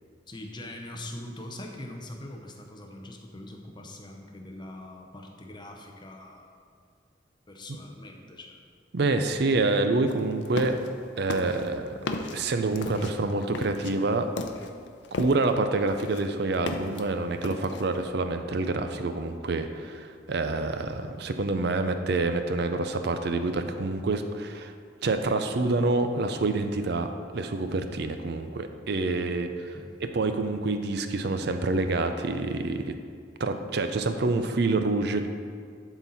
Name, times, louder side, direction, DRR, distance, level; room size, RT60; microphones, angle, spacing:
voice 1, 0.3-6.5 7.5-8.6 29.7-30.0, left 1 dB, 25° left, 2 dB, 0.7 m, -42 dB
voice 2, 8.9-10.8 11.2-12.0 12.3-14.3 15.1-24.7 25.0-29.8 30.0-32.9 33.4-35.3, right 3 dB, 60° right, 8 dB, 0.5 m, -27 dB
sound 1, 10.1-10.9 11.3-15.6 15.9-17.0 17.4-18.0, left 3 dB, 70° left, 0.5 m, -35 dB
11.5 x 4.0 x 4.1 m, 2.2 s
head